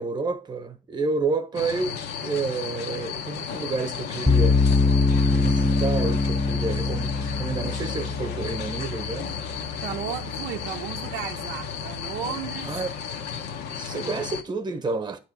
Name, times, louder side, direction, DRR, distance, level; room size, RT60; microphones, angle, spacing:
voice 1, 0.0-4.6 5.3-9.3 12.6-12.9 13.8-15.2, right 3 dB, 25° right, 0.9 m, -30 dB
sound 1, 1.5-14.4, left 7 dB, 85° left, 0.9 m, -34 dB
sound 2, 4.3-11.4, left 3 dB, 5° left, 0.3 m, -24 dB
voice 2, 9.8-12.8 14.0-14.1, right 11 dB, 85° right, 0.5 m, -34 dB
9.0 x 3.0 x 5.8 m
cardioid pair, 110°, 17 cm